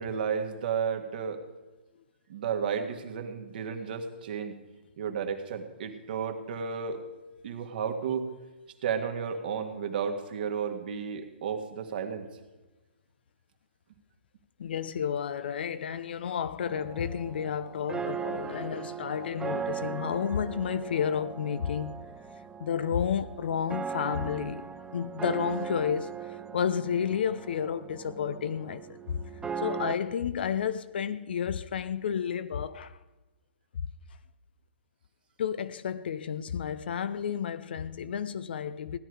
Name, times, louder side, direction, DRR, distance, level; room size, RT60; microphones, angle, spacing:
voice 1, 0.0-1.4 2.3-4.5 5.0-7.0 7.4-8.3 8.8-12.3, right 7 dB, 55° right, 1.8 m, -32 dB
voice 2, 14.6-21.9 22.6-26.2 26.5-29.2 29.6-33.0 33.7-33.8 35.4-39.0, left 8 dB, 60° left, 0.7 m, -31 dB
sound 1, 16.6-30.0, right 7 dB, 10° right, 0.6 m, -38 dB
16.5 x 11.0 x 4.9 m
figure-of-eight pair, 125°, 6 cm